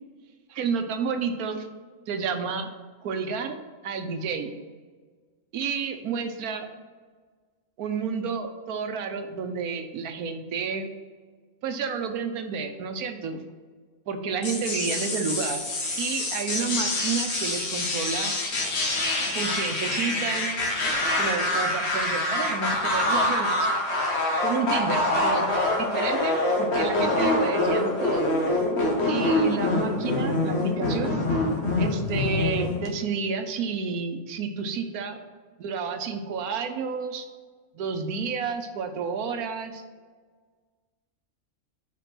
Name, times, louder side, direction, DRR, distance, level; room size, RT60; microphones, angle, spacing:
voice 1, 0.5-1.7 2.1-2.7 3.0-3.6 3.8-4.5 5.5-6.7 7.8-10.9 11.6-13.4 14.1-15.6 16.0-18.3 19.3-20.6 21.2-23.7 24.4-28.4 29.1-31.1 31.8-35.2 35.6-37.3 37.7-39.8, right 5 dB, 85° right, 7 dB, 1.3 m, -30 dB
sound 1, 14.4-32.9, left 2 dB, 50° left, 1.4 m, -25 dB
5.1 x 5.0 x 5.9 m, 1.5 s
omnidirectional pair, 1.5 m